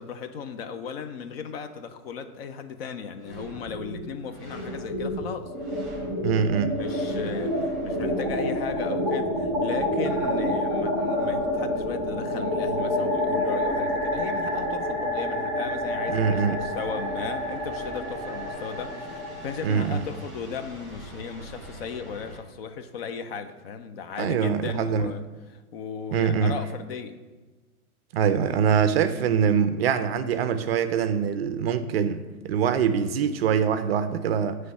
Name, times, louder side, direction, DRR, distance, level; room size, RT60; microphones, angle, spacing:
voice 1, 0.0-5.5 6.8-25.2 25.5-27.2, left 6 dB, 45° left, 9 dB, 0.5 m, -36 dB
sound 1, 3.2-4.0 4.3-22.4, left 1 dB, ahead, 2.3 m, -29 dB
voice 2, 6.2-6.8 16.1-16.6 19.6-20.0 24.2-25.1 26.1-26.6 28.1-34.6, right 7 dB, 45° right, 10 dB, 0.4 m, -24 dB
9.2 x 3.2 x 5.5 m, 1.3 s
hypercardioid pair, 130°, 44 cm